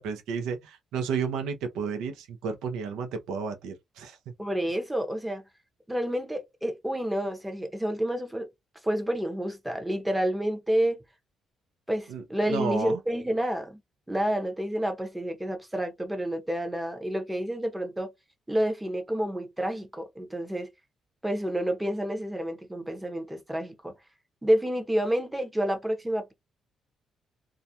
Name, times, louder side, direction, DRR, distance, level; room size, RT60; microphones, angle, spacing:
voice 1, 0.0-4.2 12.1-13.0, right 5 dB, 90° right, 0.5 m, -32 dB
voice 2, 4.4-5.4 5.9-8.5 8.8-11.0 11.9-13.8 14.1-18.1 18.5-20.7 21.2-23.9 24.4-26.3, equal, 10° right, 0.7 m, -29 dB
2.3 x 2.1 x 2.7 m
cardioid pair, 90°, 0 cm